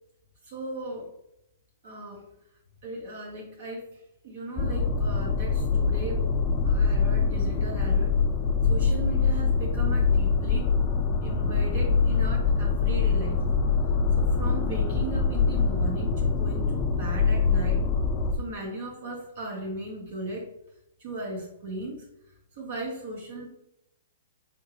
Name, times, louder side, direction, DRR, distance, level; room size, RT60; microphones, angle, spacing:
voice 1, 0.4-1.1 1.8-2.2 2.8-6.3 6.6-8.2 8.7-10.7 11.2-13.4 14.1-17.8 18.3-20.5 21.0-22.1 22.5-23.5, right 2 dB, 55° right, -2 dB, 1.2 m, -37 dB
sound 1, 4.6-18.4, left 5 dB, 25° left, 0.4 m, -24 dB
3.7 x 2.7 x 3.2 m, 0.82 s
hypercardioid pair, 155°, 0 cm